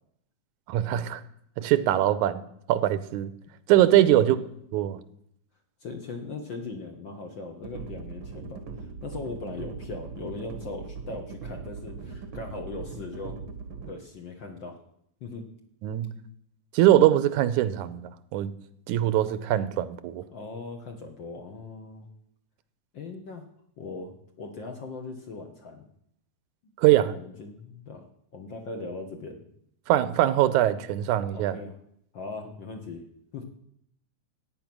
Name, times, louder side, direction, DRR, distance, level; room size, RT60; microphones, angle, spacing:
voice 1, 0.7-1.2 1.6-2.4 2.7-3.3 3.7-4.4 4.7-5.0 15.8-16.1 16.7-18.5 18.9-20.2 26.8-27.2 29.9-31.6, right 13 dB, 85° right, 15 dB, 2.2 m, -22 dB
voice 2, 4.0-4.4 5.8-13.4 13.9-14.8 15.2-15.5 20.3-22.1 22.9-23.4 23.8-25.9 27.0-28.1 28.3-29.4 31.3-31.7 32.1-33.0 33.3-33.4, left 3 dB, 55° left, 4 dB, 1.4 m, -39 dB
sound 1, 7.6-13.9, right 4 dB, 60° right, 1.4 m, -40 dB
14.0 x 9.5 x 6.1 m, 0.72 s
omnidirectional pair, 3.4 m